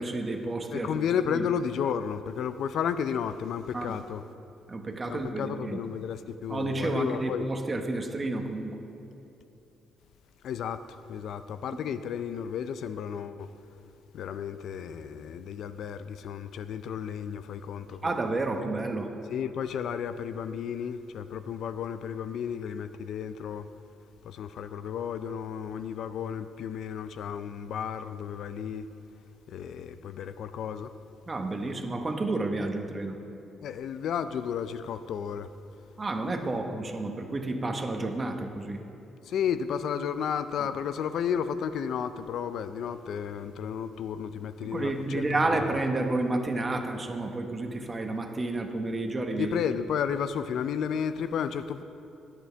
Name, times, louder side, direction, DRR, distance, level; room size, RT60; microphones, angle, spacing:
voice 1, 0.0-1.0 1.3-1.4 3.7-3.9 4.7-5.8 6.5-8.7 18.0-19.1 31.3-33.2 36.0-38.8 44.6-49.5, right 2 dB, 25° right, 1.2 m, -30 dB
voice 2, 0.7-4.2 5.1-7.5 10.4-13.5 14.1-18.0 19.3-23.7 24.2-28.9 29.5-30.9 33.6-35.5 39.3-45.8 49.4-51.8, left 8 dB, 70° left, 0.4 m, -33 dB
19.5 x 8.0 x 3.4 m
cardioid pair, 90°, 0 cm